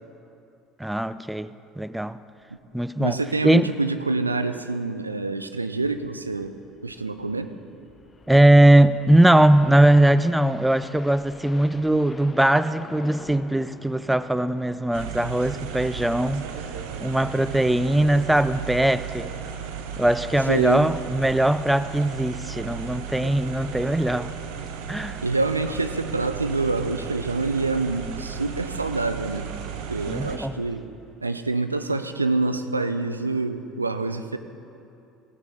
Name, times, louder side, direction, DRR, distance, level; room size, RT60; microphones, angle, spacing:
voice 1, 0.8-2.2 2.7-3.2 3.4-3.7 8.3-16.5 17.0-19.3 20.0-24.3 24.9-25.2 30.1-30.6, right 1 dB, 5° right, 0.4 m, -20 dB
sound 1, 2.6-2.7 3.0-3.1 3.4-3.5 4.0-4.3 5.6-15.0, left 3 dB, 25° left, 0.8 m, -47 dB
voice 2, 3.0-6.6 6.8-7.5 20.5-20.9 25.2-29.5 29.9-30.9 31.2-34.4, right 3 dB, 85° right, 0.4 m, -26 dB
sound 2, 14.9-30.4, right 7 dB, 65° right, 0.8 m, -35 dB
16.0 x 7.2 x 5.5 m
figure-of-eight pair, 60°, 0 cm